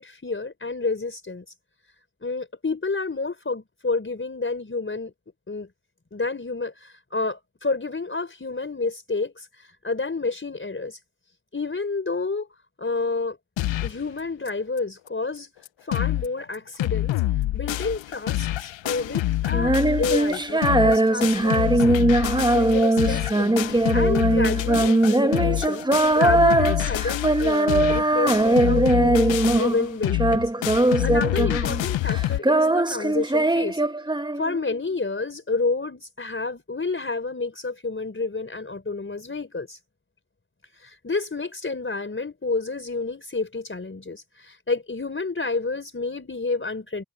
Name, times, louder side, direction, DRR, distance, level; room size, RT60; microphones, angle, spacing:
voice 1, 0.0-1.4 2.2-5.1 5.5-5.7 6.1-11.0 11.5-12.5 12.8-13.4 13.8-15.5 15.8-17.2 17.5-23.6 23.9-25.9 26.1-30.4 30.8-33.8 34.4-39.8 40.7-47.0, left 3 dB, 25° left, 4.5 m, -29 dB
sound 1, 13.6-14.0 14.5-14.6 14.8-14.9 15.4-15.5 15.7-16.3 16.5-32.4, left 14 dB, 75° left, 0.9 m, -26 dB
Female singing, 19.5-29.9 30.1-31.8 32.1-34.7, right 2 dB, 10° right, 1.3 m, -21 dB
supercardioid pair, 55°, 46 cm